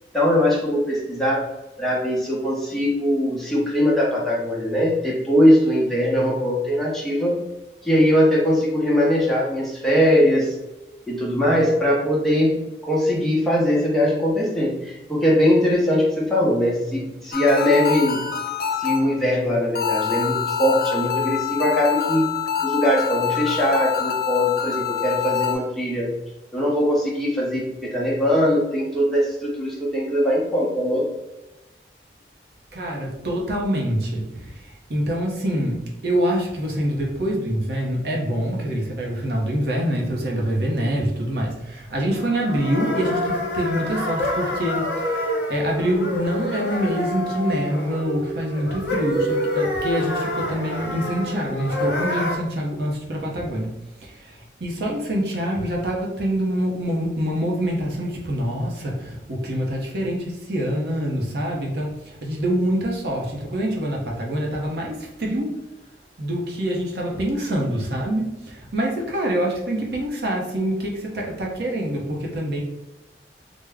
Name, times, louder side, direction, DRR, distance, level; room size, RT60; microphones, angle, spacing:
voice 1, 0.1-1.5 1.8-7.4 7.8-10.5 11.1-18.2 18.8-22.3 22.6-26.1 26.5-31.1, equal, ahead, -5 dB, 0.7 m, -21 dB
sound 1, 17.3-19.3 19.8-25.6, left 9 dB, 55° left, 0.4 m, -25 dB
voice 2, 32.7-53.7 54.0-65.6 66.2-72.6, equal, 65° right, -2 dB, 0.7 m, -25 dB
sound 2, 42.1-52.4, left 1 dB, 75° left, 0.9 m, -27 dB
3.4 x 2.1 x 3.4 m, 0.98 s
head